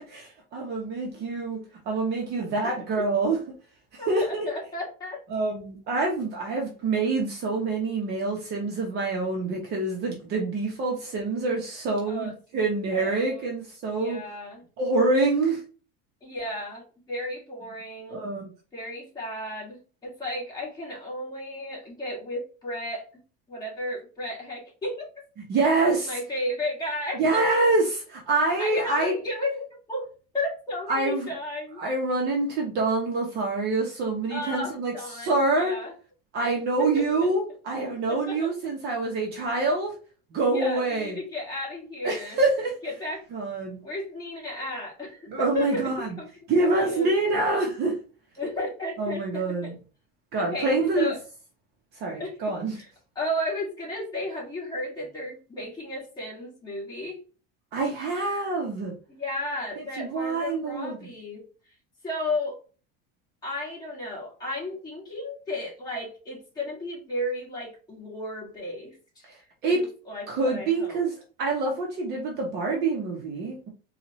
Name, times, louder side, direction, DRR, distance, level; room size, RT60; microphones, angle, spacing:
voice 1, 0.1-3.4 3.9-4.5 5.3-14.2 14.8-15.6 18.1-18.5 25.5-26.1 27.1-29.1 30.9-31.3 31.8-35.8 36.3-39.9 40.3-41.2 42.0-42.8 43.3-43.8 45.3-46.1 46.5-47.9 49.0-49.7 50.3-51.1 52.0-52.8 57.7-59.0 60.0-61.1 69.3-69.4 69.6-69.9 70.3-71.1 71.4-73.7, right 3 dB, 35° right, 0 dB, 0.9 m, -26 dB
voice 2, 4.0-5.2 12.1-12.3 12.9-13.5 13.9-14.6 16.2-18.3 18.7-23.1 23.5-25.1 25.8-27.2 28.6-30.1 30.3-31.8 34.3-35.9 36.4-36.5 36.8-37.0 38.1-38.5 40.4-42.4 42.8-43.2 43.8-45.9 46.2-46.3 46.6-47.2 47.5-47.6 48.4-49.7 50.4-51.2 52.2-52.4 52.7-52.9 53.2-57.2 59.1-61.4 62.0-62.6 63.4-69.3 69.7-71.0, left 1 dB, 15° left, -4 dB, 1.9 m, -33 dB
4.4 x 2.4 x 3.0 m, 0.36 s
cardioid pair, 170°, 29 cm